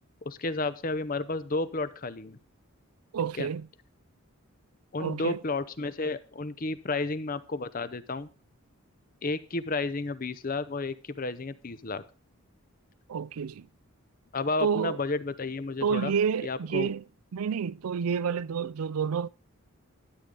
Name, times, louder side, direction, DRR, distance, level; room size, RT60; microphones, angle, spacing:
voice 1, 0.2-2.4 3.4-3.5 4.9-8.3 9.2-12.0 14.3-16.1 16.4-16.9, left 3 dB, 40° left, 0.7 m, -32 dB
voice 2, 3.1-3.7 5.0-5.4 13.1-13.7 14.6-15.0 15.8-17.0 17.3-19.3, right 7 dB, 80° right, 0.4 m, -29 dB
12.5 x 8.4 x 3.8 m
head